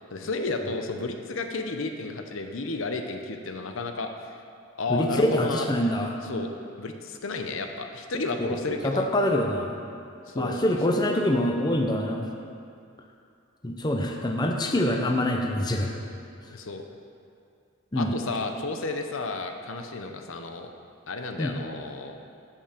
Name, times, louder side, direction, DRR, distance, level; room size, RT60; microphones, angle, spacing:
voice 1, 0.1-4.3 4.7-5.9 6.2-6.5 6.8-9.1 10.3-10.8 16.5-16.9 18.0-20.7 21.1-22.1, left 3 dB, 70° left, 5 dB, 0.7 m, -32 dB
voice 2, 4.9-6.2 8.4-8.5 8.8-9.8 10.3-12.3 13.6-15.9 17.9-18.1 21.4-21.5, left 1 dB, 20° left, 1 dB, 0.7 m, -25 dB
14.0 x 5.6 x 5.1 m, 2.4 s
head